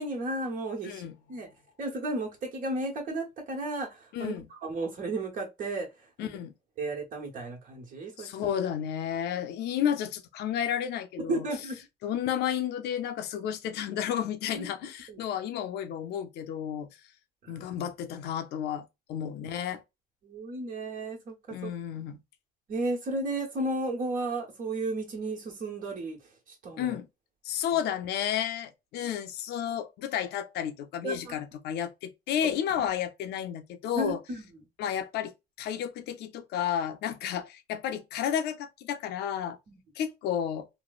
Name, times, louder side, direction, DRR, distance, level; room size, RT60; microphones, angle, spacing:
voice 1, 0.0-1.0 1.3-1.5 1.8-4.3 4.6-5.9 6.2-6.3 6.8-8.3 11.3-11.8 14.5-14.7 15.1-15.2 17.4-17.5 20.2-21.7 22.7-26.2 26.6-27.0 29.0-29.1 31.0-31.3 32.4-32.5 34.0-34.5 39.7-39.8, right 2 dB, 50° right, 1.3 m, -33 dB
voice 2, 0.8-1.4 4.1-4.5 6.2-6.5 8.2-11.5 12.0-16.9 17.5-19.8 21.5-22.2 26.8-27.1 27.4-34.2 34.8-39.6 40.0-40.7, left 9 dB, 75° left, 0.6 m, -32 dB
3.1 x 2.1 x 2.4 m
cardioid pair, 110°, 17 cm